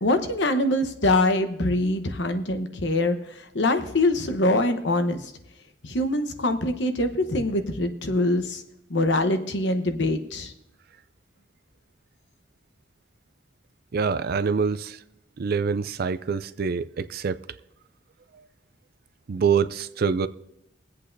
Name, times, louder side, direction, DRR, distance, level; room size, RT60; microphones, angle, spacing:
voice 1, 0.0-3.2 3.5-5.3 5.8-8.6 8.9-10.5, left 1 dB, 70° left, 1.0 m, -24 dB
voice 2, 13.9-15.0 15.4-17.4 19.3-20.3, right 5 dB, 55° right, 0.4 m, -25 dB
23.5 x 8.3 x 2.7 m
head